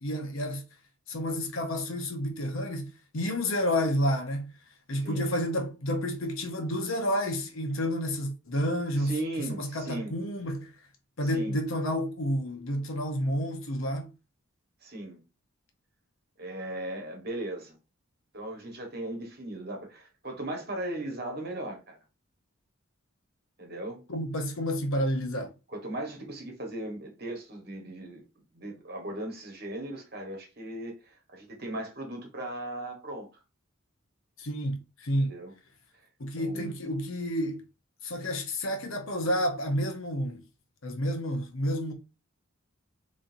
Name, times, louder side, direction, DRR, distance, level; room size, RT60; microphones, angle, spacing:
voice 1, 0.0-0.6 1.1-4.5 4.9-10.7 11.2-14.1 24.1-25.5 34.4-35.3 36.2-37.6 38.0-40.5 40.8-41.9, equal, 70° left, 0.9 m, -30 dB
voice 2, 9.0-10.1 11.2-11.6 14.8-15.2 16.4-17.8 18.3-22.0 23.6-24.0 25.7-28.2 28.5-33.3 35.2-35.5 36.4-36.7, right 1 dB, 45° right, 1.4 m, -37 dB
3.9 x 3.2 x 2.6 m
head